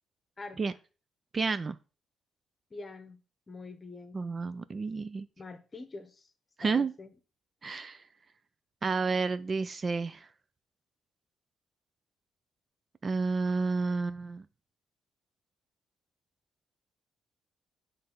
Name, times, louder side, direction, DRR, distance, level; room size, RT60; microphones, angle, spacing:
voice 1, 1.3-1.8 4.1-5.3 6.6-6.9 7.6-8.0 8.8-10.3 13.0-14.5, right 4 dB, 35° right, 0.4 m, -30 dB
voice 2, 2.7-3.2 3.5-4.2 5.4-6.3 6.6-7.1, left 3 dB, 30° left, 1.0 m, -45 dB
7.6 x 3.4 x 5.8 m
cardioid pair, 90°, 0 cm